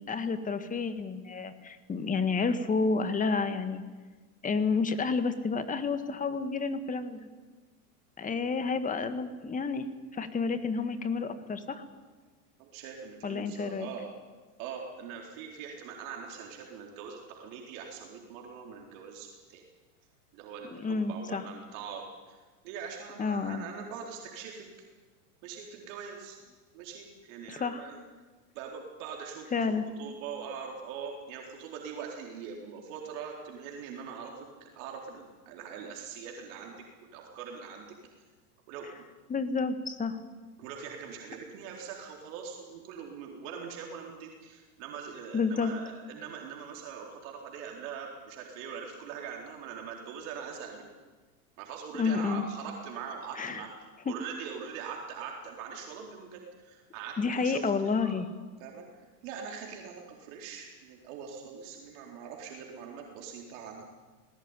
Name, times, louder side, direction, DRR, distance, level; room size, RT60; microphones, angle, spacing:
voice 1, 0.0-3.8 4.4-7.3 8.2-9.9 10.1-11.8 13.2-13.9 20.8-21.4 23.2-23.7 27.5-27.9 29.5-29.8 39.3-40.2 45.3-45.7 51.9-52.4 53.4-53.6 54.1-54.2 57.2-58.3, left 4 dB, 15° left, 10 dB, 1.7 m, -30 dB
voice 2, 12.6-14.1 14.6-19.6 20.3-22.4 22.6-24.7 25.4-26.4 26.7-28.0 28.5-29.7 30.0-37.9 38.7-39.0 40.6-50.9 51.6-58.2 58.6-58.8 59.2-63.8, right 6 dB, 55° right, 0 dB, 4.2 m, -42 dB
19.5 x 18.5 x 9.8 m, 1.3 s
hypercardioid pair, 125°, 46 cm